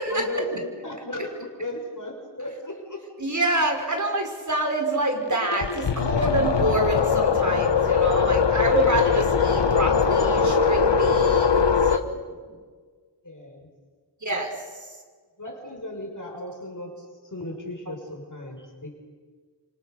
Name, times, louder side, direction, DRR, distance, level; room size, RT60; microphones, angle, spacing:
voice 1, 0.1-3.0 13.2-13.7 15.4-16.9 17.3-18.9, left 1 dB, 45° left, 1 dB, 6.1 m, -35 dB
voice 2, 3.2-12.0 14.2-14.5, right 2 dB, 45° right, 3 dB, 5.6 m, -26 dB
sound 1, 5.3-12.0, left 6 dB, 75° left, 1.3 m, -21 dB
29.0 x 25.5 x 6.8 m, 1.6 s
wide cardioid pair, 50°, 42 cm